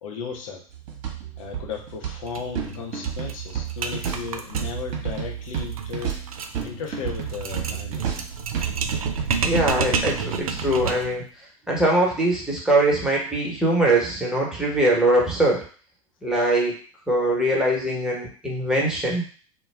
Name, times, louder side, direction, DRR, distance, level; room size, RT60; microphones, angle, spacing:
voice 1, 0.0-0.6 1.4-6.1 6.6-8.0, left 6 dB, 65° left, 2 dB, 0.7 m, -35 dB
sound 1, 0.7-9.7, right 8 dB, 50° right, 0.8 m, -31 dB
sound 2, 2.3-2.4 2.7-2.8 3.0-11.2, right 5 dB, 80° right, 0.4 m, -30 dB
voice 2, 9.4-11.2 11.7-15.6 16.2-16.8 17.1-19.2, right 1 dB, 5° right, -4 dB, 1.0 m, -22 dB
2.2 x 2.1 x 3.3 m, 0.40 s
figure-of-eight pair, 85°, 18 cm